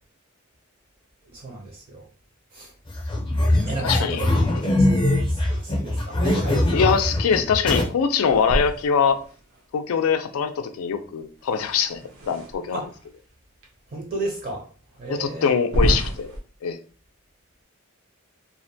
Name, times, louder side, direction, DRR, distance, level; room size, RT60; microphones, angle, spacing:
voice 1, 1.2-2.1 2.5-2.7 3.6-4.9 5.3-6.7 12.7-12.9 13.9-14.7 14.9-15.5, right 2 dB, 45° right, 0 dB, 0.5 m, -34 dB
sound 1, 2.9-7.8, left 1 dB, 25° left, 0.5 m, -22 dB
voice 2, 3.5-4.2 6.7-9.2 9.7-12.0 12.3-12.8 15.1-16.4 16.6-16.8, left 6 dB, 80° left, 9 dB, 0.3 m, -23 dB
sound 2, 8.2-9.6 11.4-12.9 13.6-13.7 14.4-14.5 15.6-16.4, right 1 dB, 90° right, 0.6 m, -28 dB
2.5 x 2.1 x 2.6 m, 0.39 s
head